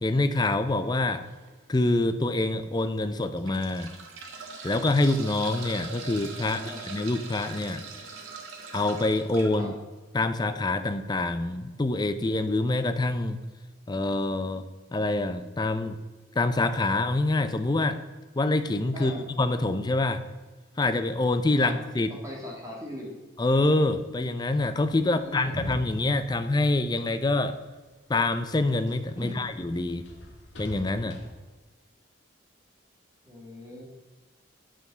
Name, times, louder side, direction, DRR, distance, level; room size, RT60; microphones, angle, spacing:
voice 1, 0.0-1.2 1.7-3.9 4.6-7.8 8.7-9.7 10.1-13.4 13.9-14.6 14.9-16.0 16.4-18.0 18.4-19.1 19.4-20.2 20.8-22.1 23.4-27.6 28.1-30.1 30.6-31.2, left 2 dB, 20° left, 11 dB, 0.4 m, -26 dB
sound 1, 1.2-1.5 2.1-2.2 3.2-9.6 11.2-11.3 11.6-11.7, right 4 dB, 90° right, 1.4 m, -41 dB
voice 2, 6.4-6.8 9.6-9.7 18.9-19.2 21.6-21.8 22.2-23.1 25.0-25.6 29.2-29.4 33.2-33.8, left 1 dB, 15° right, -2 dB, 2.0 m, -40 dB
sound 2, 24.6-27.6 28.0-31.3, equal, 65° left, 1.4 m, -43 dB
8.0 x 5.1 x 6.7 m, 1.3 s
head